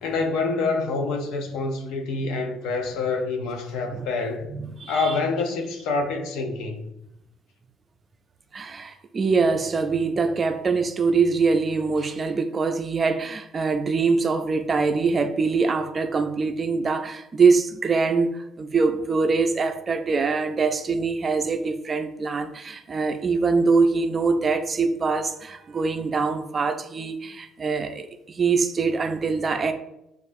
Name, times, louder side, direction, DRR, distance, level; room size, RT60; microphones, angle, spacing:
voice 1, 0.0-4.5 4.9-6.9, left 3 dB, 85° left, 0.6 m, -26 dB
voice 2, 4.5-5.1 8.5-29.7, right 4 dB, 35° right, 0.4 m, -23 dB
6.4 x 2.4 x 2.6 m
cardioid pair, 90°, 0 cm